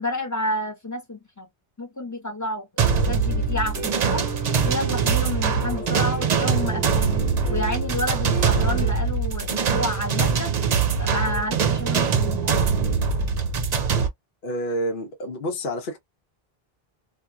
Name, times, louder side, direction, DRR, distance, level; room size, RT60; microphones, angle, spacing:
voice 1, 0.0-1.5 1.8-4.3 4.6-7.2 7.5-10.5 11.0-12.7, left 1 dB, 20° left, 0.7 m, -30 dB
sound 1, 2.8-14.1, right 5 dB, 50° right, 0.6 m, -23 dB
sound 2, 3.2-8.9, right 4 dB, 5° right, 0.9 m, -36 dB
voice 2, 14.4-16.0, equal, 65° left, 0.9 m, -29 dB
2.8 x 2.3 x 2.3 m
omnidirectional pair, 1.0 m